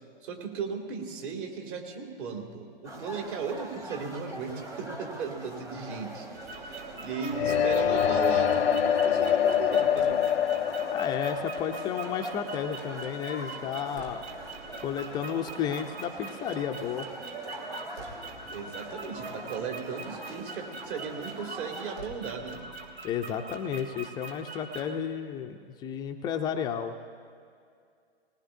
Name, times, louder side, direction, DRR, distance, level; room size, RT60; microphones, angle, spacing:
voice 1, 0.2-6.3 6.9-10.3 18.5-22.7, right 5 dB, 55° right, 2 dB, 2.6 m, -36 dB
sound 1, 2.8-22.0, right 2 dB, 10° right, 0.9 m, -43 dB
sound 2, 6.3-25.0, right 3 dB, 85° right, 1.8 m, -44 dB
sound 3, 7.3-13.2, left 9 dB, 85° left, 0.7 m, -26 dB
voice 2, 10.9-14.2 14.8-17.1 23.0-26.9, left 8 dB, 15° left, 5 dB, 0.4 m, -32 dB
19.5 x 19.5 x 2.6 m, 2.2 s
hypercardioid pair, 130°, 31 cm